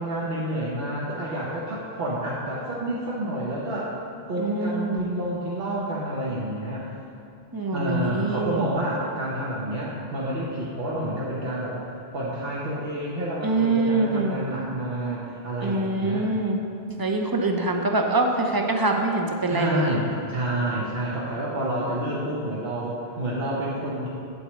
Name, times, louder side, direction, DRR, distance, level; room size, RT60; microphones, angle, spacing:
voice 1, 0.0-3.9 4.3-6.9 7.7-11.8 12.1-16.3 19.5-24.1, right 1 dB, 70° right, -6 dB, 1.1 m, -29 dB
voice 2, 4.4-5.1 7.5-8.7 13.4-14.4 15.6-16.6 16.9-19.9, right 2 dB, 35° right, 3 dB, 0.3 m, -24 dB
8.2 x 7.9 x 3.1 m, 2.5 s
omnidirectional pair, 1.0 m